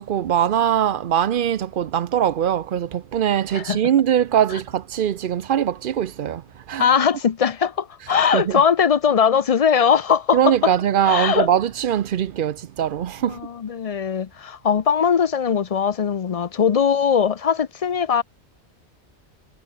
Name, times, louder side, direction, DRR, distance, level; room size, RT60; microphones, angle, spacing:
voice 1, 0.0-7.0 8.0-8.7 10.3-13.4, right 9 dB, 60° right, 0.7 m, -22 dB
voice 2, 6.8-10.7 11.0-11.5 13.2-18.2, left 7 dB, 40° left, 0.5 m, -20 dB
omnidirectional pair, 1.2 m